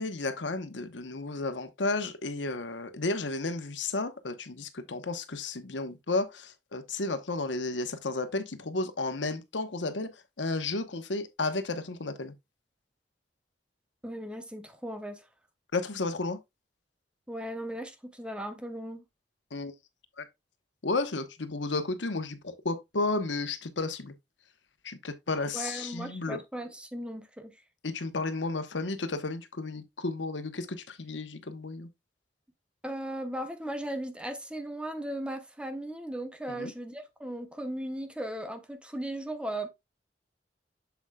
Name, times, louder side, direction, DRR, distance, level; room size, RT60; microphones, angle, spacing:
voice 1, 0.0-12.3 15.7-16.4 19.5-19.7 20.2-20.3 20.8-24.1 24.8-26.4 27.8-31.9 36.5-36.7, left 3 dB, 90° left, 1.1 m, -33 dB
voice 2, 14.0-15.2 17.3-19.0 25.5-27.6 32.8-39.7, right 1 dB, 5° right, 0.8 m, -37 dB
7.5 x 7.1 x 2.3 m
head